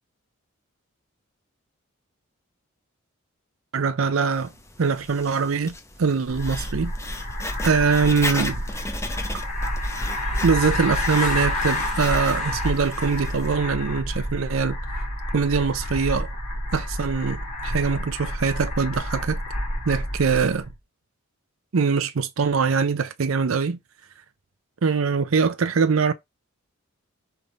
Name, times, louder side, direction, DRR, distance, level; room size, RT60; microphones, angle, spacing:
voice 1, 3.7-4.5 4.8-6.9 7.6-8.6 10.4-14.8 15.3-16.3 16.7-19.4 19.9-20.7 21.7-23.8 24.8-26.1, right 5 dB, 70° right, 0.6 m, -23 dB
Writing, 4.3-13.5, left 2 dB, 15° left, 1.0 m, -36 dB
sound 1, 6.3-20.7, left 1 dB, 35° left, 3.0 m, -29 dB
5.5 x 3.6 x 5.0 m
head